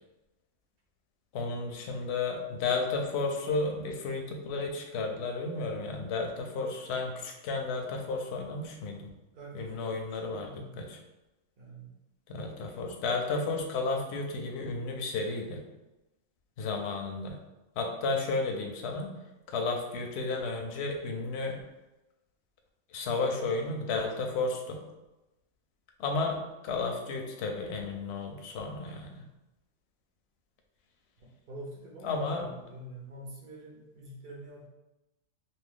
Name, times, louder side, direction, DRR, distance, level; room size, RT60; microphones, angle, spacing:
voice 1, 1.3-9.1 9.5-10.5 10.8-11.0 12.3-15.6 16.6-17.4 17.8-19.1 19.5-21.6 22.9-24.8 26.0-29.2 32.0-32.5, left 3 dB, 65° left, 2 dB, 0.7 m, -32 dB
voice 2, 9.3-10.8 11.6-12.0 31.2-34.7, right 1 dB, 50° right, -3 dB, 0.8 m, -46 dB
2.7 x 2.6 x 3.5 m, 1.0 s
omnidirectional pair, 1.4 m